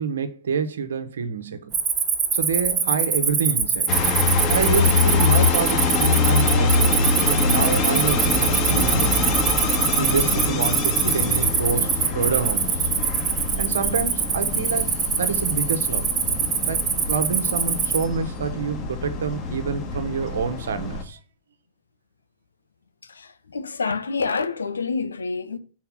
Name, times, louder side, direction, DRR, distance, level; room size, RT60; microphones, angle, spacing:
voice 1, 0.0-1.7 2.3-3.9 4.5-9.3 10.0-12.9 13.6-16.1 16.6-16.8 17.1-21.2, right 5 dB, 75° right, 1.1 m, -27 dB
Cricket, 1.7-18.0, right 6 dB, 25° right, 1.3 m, -23 dB
sound 1, 3.9-21.0, left 4 dB, 35° left, 1.8 m, -24 dB
voice 2, 23.1-25.6, left 4 dB, 85° left, 0.8 m, -27 dB
5.8 x 4.6 x 6.0 m
hypercardioid pair, 105°, 0 cm